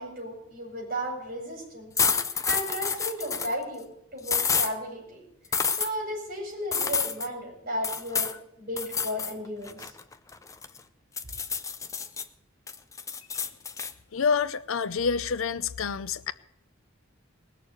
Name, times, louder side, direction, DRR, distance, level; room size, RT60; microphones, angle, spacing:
voice 1, 0.0-1.9 2.5-3.9 4.1-5.2 5.7-9.9, equal, 45° right, -1 dB, 5.2 m, -34 dB
sound 1, 2.0-3.5 4.3-4.7 5.5-5.9 6.7-7.3 7.8-8.4 8.8-9.3 9.7-10.8 11.2-12.2 12.7-13.9, left 6 dB, 15° left, 0.5 m, -28 dB
voice 2, 14.1-16.3, left 6 dB, 75° left, 15 dB, 0.6 m, -27 dB
19.5 x 6.8 x 8.2 m, 0.80 s
head